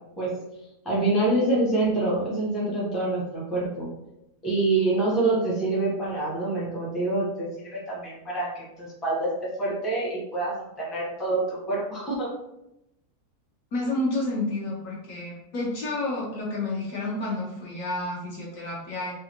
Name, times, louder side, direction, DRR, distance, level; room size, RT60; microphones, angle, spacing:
voice 1, 0.8-3.9 4.4-12.3, right 2 dB, ahead, -6 dB, 0.5 m, -26 dB
voice 2, 13.7-19.1, left 2 dB, 65° left, -3 dB, 1.0 m, -30 dB
3.2 x 2.4 x 2.8 m, 0.87 s
omnidirectional pair, 1.7 m